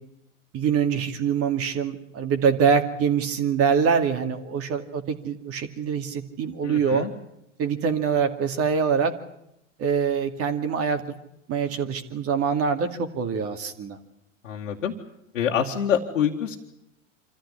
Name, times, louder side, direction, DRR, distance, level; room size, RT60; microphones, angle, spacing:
voice 1, 0.5-7.1 7.6-9.1 9.8-11.0 11.5-14.0, right 6 dB, 35° right, 7 dB, 2.3 m, -24 dB
voice 2, 6.6-7.1 14.4-14.9 15.3-16.6, left 8 dB, 80° left, -1 dB, 1.9 m, -26 dB
26.0 x 14.5 x 10.0 m, 0.84 s
hypercardioid pair, 95°, 38 cm